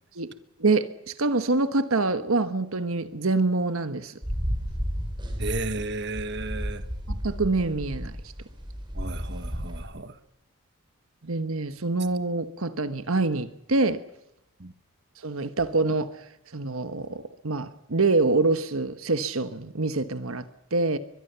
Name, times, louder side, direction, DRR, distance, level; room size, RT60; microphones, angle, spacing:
voice 1, 0.6-4.1 7.1-8.2 11.2-14.0 15.2-16.2 16.5-21.0, right 3 dB, 75° right, 1.3 m, -26 dB
sound 1, 4.2-9.8, equal, 20° right, 5.6 m, -32 dB
voice 2, 5.4-6.8 8.9-10.2 14.6-14.7, right 2 dB, 50° right, 1.4 m, -33 dB
23.0 x 22.0 x 6.9 m
head